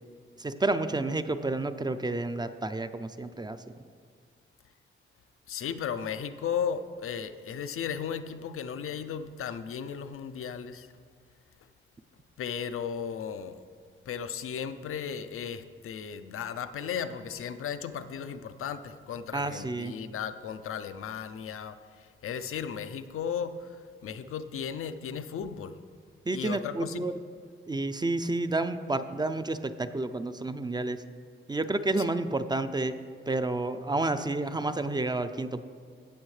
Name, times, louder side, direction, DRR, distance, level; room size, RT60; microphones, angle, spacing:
voice 1, 0.4-3.6 19.3-20.0 26.3-27.1 27.7-31.0 31.5-32.9 33.3-35.6, right 2 dB, 20° right, 10 dB, 0.4 m, -30 dB
voice 2, 5.5-10.9 12.4-13.6 14.1-25.8 26.3-27.0, left 7 dB, 85° left, 10 dB, 0.5 m, -35 dB
16.5 x 6.2 x 3.2 m, 2.1 s
wide cardioid pair, 100°, 21 cm